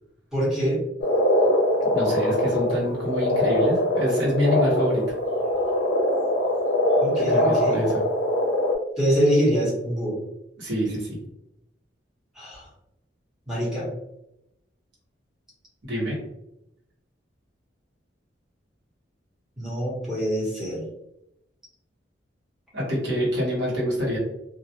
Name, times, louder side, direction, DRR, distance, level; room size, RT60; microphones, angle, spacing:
voice 1, 0.3-0.8 7.0-7.8 9.0-10.2 12.4-12.6 13.5-13.9 19.6-20.8, equal, 5° right, -7 dB, 0.9 m, -24 dB
Frog, 1.0-8.8, left 1 dB, 70° left, 0.5 m, -22 dB
voice 2, 1.9-5.0 7.1-8.0 10.6-11.2 15.8-16.1 22.7-24.2, equal, 65° right, -5 dB, 1.0 m, -26 dB
2.3 x 2.1 x 2.7 m, 0.84 s
head